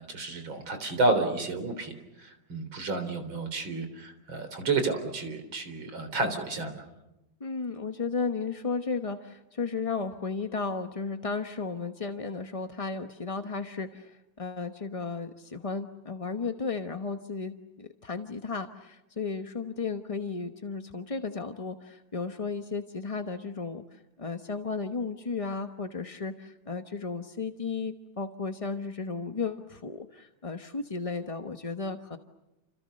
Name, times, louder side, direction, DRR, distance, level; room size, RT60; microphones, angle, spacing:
voice 1, 0.0-6.8, right 3 dB, 75° right, 8 dB, 4.5 m, -30 dB
voice 2, 7.4-32.2, left 4 dB, 25° left, 6 dB, 0.7 m, -34 dB
29.5 x 28.5 x 6.6 m, 0.96 s
omnidirectional pair, 2.2 m